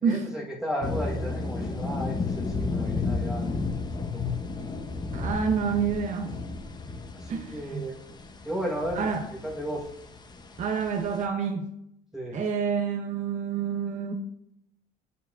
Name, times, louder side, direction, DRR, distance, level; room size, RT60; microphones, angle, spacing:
voice 1, 0.0-3.6 4.1-4.3 7.1-8.0 8.4-9.1 9.4-9.9 12.1-12.4, equal, 5° right, -4 dB, 1.2 m, -34 dB
sound 1, 0.8-11.3, left 3 dB, 25° left, 0.7 m, -33 dB
voice 2, 5.1-6.4 7.3-7.9 8.9-9.3 10.6-11.7 12.3-14.1, right 6 dB, 45° right, 4 dB, 0.6 m, -28 dB
8.3 x 5.5 x 2.4 m, 0.77 s
cardioid pair, 110°, 17 cm